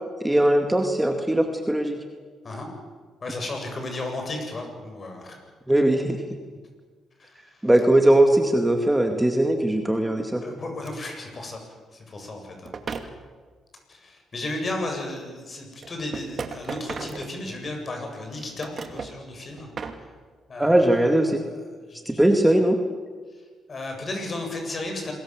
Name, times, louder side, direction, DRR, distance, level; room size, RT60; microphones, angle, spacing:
voice 1, 0.2-2.0 5.7-6.2 7.6-10.4 20.6-21.4 22.1-22.8, right 1 dB, 10° right, 4 dB, 2.3 m, -20 dB
voice 2, 3.2-5.4 6.4-6.6 7.2-7.7 10.4-11.6 11.9-12.7 13.9-19.7 19.9-20.1 20.5-22.2 23.3-25.1, left 2 dB, 40° left, 3 dB, 7.9 m, -34 dB
sound 1, 10.9-11.0 12.6-13.1 14.8-14.9 15.8-17.8 18.3-19.2 19.6-20.0, right 5 dB, 45° right, 2.5 m, -35 dB
27.5 x 21.0 x 7.7 m, 1.5 s
cardioid pair, 90°, 0 cm